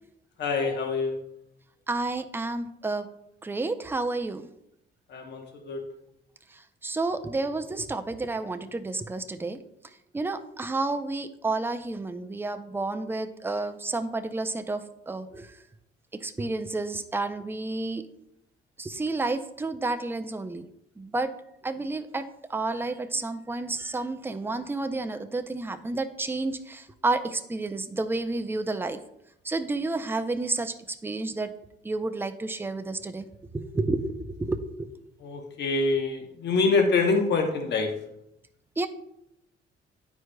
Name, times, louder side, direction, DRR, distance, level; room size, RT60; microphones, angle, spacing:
voice 1, 0.4-1.2 5.1-5.8 35.2-37.9, left 4 dB, 60° left, 3 dB, 1.0 m, -25 dB
voice 2, 1.9-3.1 3.4-4.4 6.8-9.6 10.1-15.5 16.1-18.0 18.8-20.7 21.0-21.3 21.6-29.0 29.4-30.7 31.0-31.5 31.8-33.3 33.5-34.9 38.8-38.9, right 3 dB, 10° right, 8 dB, 0.5 m, -30 dB
9.9 x 4.7 x 2.2 m, 0.80 s
cardioid pair, 90°, 20 cm